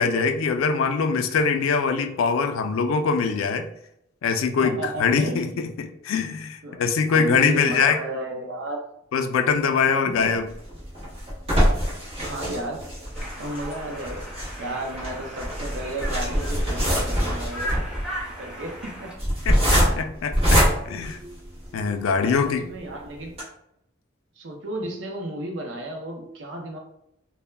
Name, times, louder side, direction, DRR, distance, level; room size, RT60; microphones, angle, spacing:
voice 1, 0.0-3.7 4.2-8.0 9.1-10.5 19.5-21.2 21.7-22.6, left 5 dB, 85° left, 7 dB, 0.3 m, -23 dB
voice 2, 4.6-5.6 6.6-8.9 10.1-10.3 12.2-12.9 13.4-14.3 14.6-17.8 18.4-19.1 19.9-20.1 22.2-23.4 24.4-26.8, right 1 dB, 65° right, 2 dB, 0.5 m, -33 dB
sound 1, 10.5-21.9 22.4-22.5 22.8-22.9 23.3-23.4, equal, 30° right, 1.0 m, -24 dB
Conversation, 13.1-19.1, equal, 5° right, 0.4 m, -37 dB
2.2 x 2.0 x 3.2 m, 0.77 s
head